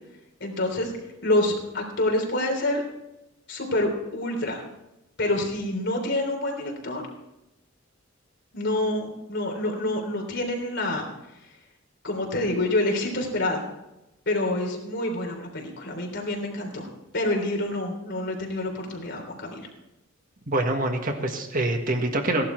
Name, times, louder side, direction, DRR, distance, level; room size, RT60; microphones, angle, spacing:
voice 1, 0.4-0.9 1.2-2.8 3.5-4.6 5.2-7.0 8.5-11.1 12.0-13.6 14.3-16.9 17.1-19.7, left 1 dB, 60° left, 1 dB, 3.5 m, -27 dB
voice 2, 20.5-22.4, right 1 dB, 45° right, 4 dB, 1.5 m, -25 dB
16.0 x 11.5 x 4.5 m, 0.93 s
head